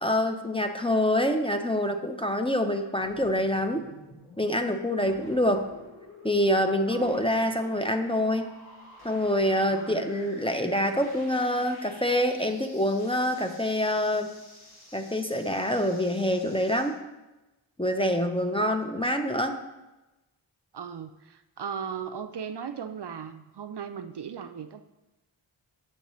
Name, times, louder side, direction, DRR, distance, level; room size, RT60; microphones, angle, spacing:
voice 1, 0.0-3.8 4.4-5.7 6.2-8.5 9.0-14.3 14.9-17.0 17.8-19.6, left 1 dB, 10° left, 6 dB, 0.6 m, -26 dB
sound 1, 3.0-16.9, left 1 dB, 50° left, 2.3 m, -50 dB
voice 2, 6.9-7.2 9.7-10.1 20.7-24.9, right 7 dB, 55° right, 9 dB, 0.5 m, -37 dB
8.7 x 6.5 x 3.1 m, 1.0 s
wide cardioid pair, 40°, 48 cm